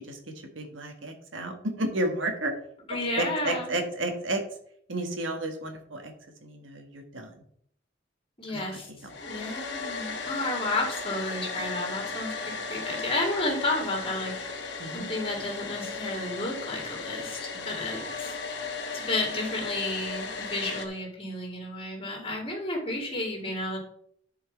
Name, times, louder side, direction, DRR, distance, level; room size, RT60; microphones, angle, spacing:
voice 1, 0.1-2.5 3.1-4.4 4.9-6.1 6.4-7.3 8.5-8.8 14.8-15.1 17.5-17.9, right 1 dB, 75° right, 4 dB, 1.6 m, -32 dB
voice 2, 2.9-3.7 8.4-8.9 9.2-14.6 14.9-18.6 18.9-23.8, left 2 dB, 30° left, -1 dB, 2.5 m, -32 dB
Domestic sounds home sounds, 9.1-20.9, left 4 dB, 60° left, 1.1 m, -36 dB
10.5 x 4.7 x 4.6 m, 0.67 s
head